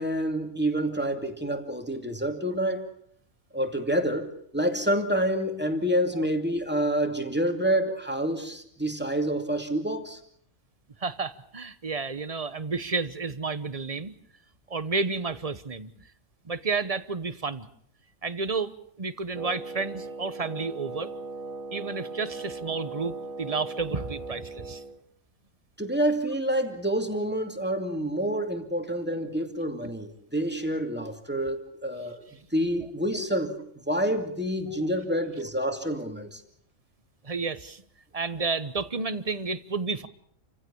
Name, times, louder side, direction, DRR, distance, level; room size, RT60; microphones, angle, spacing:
voice 1, 0.0-2.8 3.5-10.2 25.8-32.2 32.5-33.6 33.9-36.4, right 1 dB, 5° right, 5 dB, 2.6 m, -28 dB
voice 2, 11.0-14.1 14.7-15.9 16.4-17.7 18.2-21.1 21.7-24.8 37.2-37.8 38.1-40.1, right 4 dB, 30° right, 14 dB, 1.0 m, -31 dB
Wind instrument woodwind instrument, 19.3-25.0, right 3 dB, 75° right, 1.8 m, -38 dB
28.5 x 16.0 x 8.5 m, 0.67 s
omnidirectional pair, 1.4 m